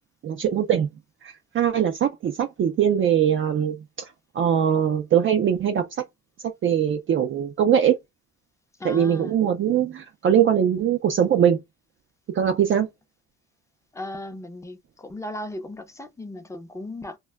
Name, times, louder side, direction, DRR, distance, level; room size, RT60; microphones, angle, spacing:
voice 1, 0.2-0.9 1.2-3.8 4.3-5.9 6.6-8.0 8.8-11.6 12.3-12.9, right 9 dB, 45° right, 0.4 m, -21 dB
voice 2, 8.8-9.4 13.9-17.2, left 1 dB, 10° left, 0.5 m, -36 dB
2.2 x 2.0 x 3.3 m
cardioid pair, 90°, 30 cm